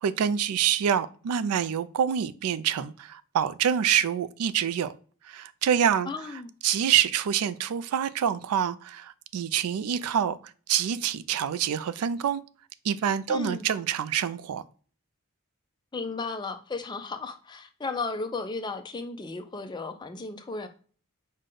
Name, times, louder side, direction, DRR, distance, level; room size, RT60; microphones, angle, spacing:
voice 1, 0.0-5.0 5.2-6.1 6.6-10.4 10.7-12.4 12.8-14.6, right 9 dB, 90° right, 0.3 m, -26 dB
voice 2, 6.1-6.5 13.3-13.7 15.9-20.7, left 3 dB, 20° left, 0.4 m, -34 dB
5.2 x 2.2 x 3.7 m
head